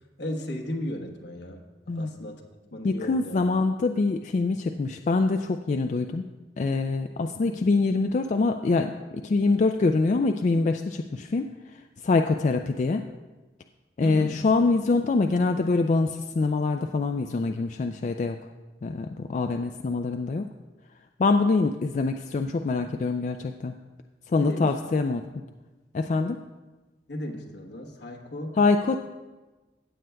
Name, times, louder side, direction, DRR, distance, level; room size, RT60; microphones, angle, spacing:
voice 1, 0.2-1.6 1.9-2.4 2.7-3.4 14.0-14.5 14.8-14.9 24.4-24.8 25.1-25.3 27.1-28.6, left 1 dB, 75° left, 2 dB, 1.1 m, -35 dB
voice 2, 2.8-6.2 6.6-11.5 12.0-13.0 14.0-18.4 18.8-20.5 21.2-23.7 24.3-25.2 25.9-26.4 28.6-29.0, left 3 dB, 45° left, 6 dB, 0.3 m, -24 dB
17.0 x 7.5 x 2.3 m, 1.2 s
head